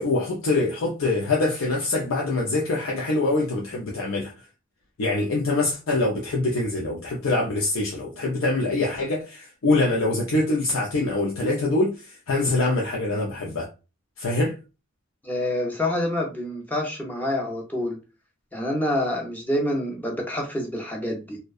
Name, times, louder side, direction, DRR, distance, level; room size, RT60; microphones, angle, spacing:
voice 1, 0.0-4.3 5.0-13.7 14.2-14.6, left 2 dB, 70° left, 0.5 m, -24 dB
voice 2, 15.2-18.0 18.5-21.4, left 1 dB, 10° left, 0.5 m, -27 dB
2.6 x 2.1 x 2.3 m
head